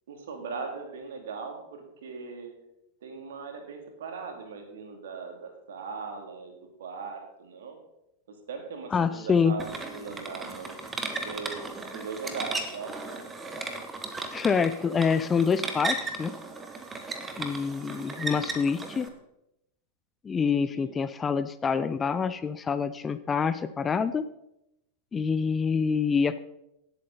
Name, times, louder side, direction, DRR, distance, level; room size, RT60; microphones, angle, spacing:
voice 1, 0.1-2.5 3.0-7.8 8.3-11.7 11.9-13.2 17.4-18.1 20.7-21.0, right 5 dB, 60° right, 4 dB, 2.6 m, -39 dB
voice 2, 8.9-9.5 14.3-16.3 17.4-19.1 20.2-24.3 25.1-26.4, left 6 dB, 20° left, 13 dB, 0.5 m, -26 dB
sound 1, 9.6-19.1, right 3 dB, 15° right, 1.5 m, -36 dB
18.0 x 8.3 x 4.0 m, 0.84 s
figure-of-eight pair, 90°, 0 cm